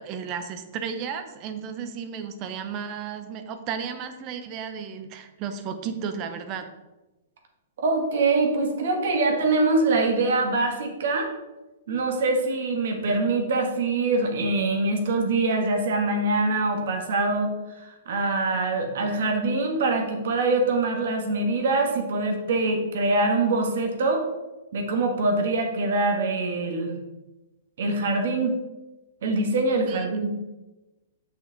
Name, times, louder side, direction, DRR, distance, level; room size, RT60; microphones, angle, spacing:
voice 1, 0.0-6.7 29.9-30.1, right 7 dB, 30° right, 8 dB, 0.6 m, -33 dB
voice 2, 7.8-11.3 11.9-17.5 17.8-24.3 24.7-26.9 27.8-28.5 29.2-30.3, right 3 dB, 65° right, 3 dB, 1.3 m, -24 dB
6.2 x 5.6 x 3.9 m, 1.1 s
hypercardioid pair, 155°, 0 cm